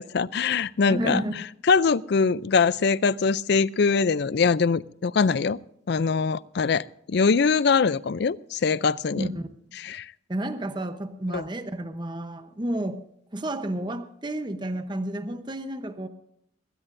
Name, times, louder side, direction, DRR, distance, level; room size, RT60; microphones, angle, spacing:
voice 1, 0.0-5.6 5.9-9.3 9.8-10.1 11.3-11.5, left 5 dB, 55° left, 19 dB, 0.4 m, -23 dB
voice 2, 0.9-1.5 9.1-9.5 10.3-13.0 13.3-16.1, right 1 dB, 25° right, 9 dB, 0.8 m, -31 dB
20.0 x 17.5 x 2.6 m, 0.73 s
head